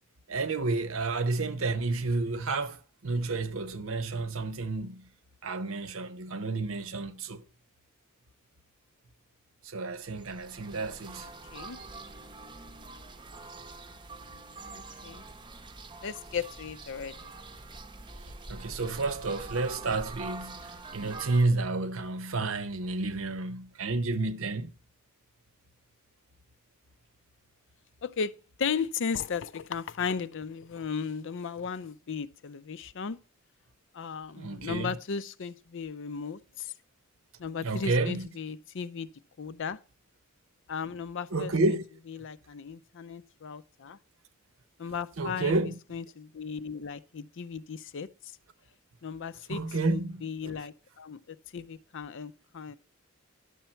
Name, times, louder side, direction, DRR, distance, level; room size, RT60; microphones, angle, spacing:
voice 1, 0.3-5.1 5.4-7.4 9.6-11.3 18.5-24.7 34.4-35.0 37.6-38.3 41.3-41.8 45.2-45.8 49.5-50.5, right 3 dB, 70° right, 0.8 m, -30 dB
sound 1, 10.0-21.5, right 3 dB, 20° right, 0.7 m, -45 dB
voice 2, 14.7-15.2 16.0-17.3 28.0-28.3 28.6-33.2 33.9-36.7 37.4-39.1 39.4-39.8 40.7-41.8 42.1-44.0 44.8-45.5 45.9-48.1 49.0-52.8, left 6 dB, 65° left, 0.5 m, -36 dB
11.0 x 6.9 x 4.4 m
head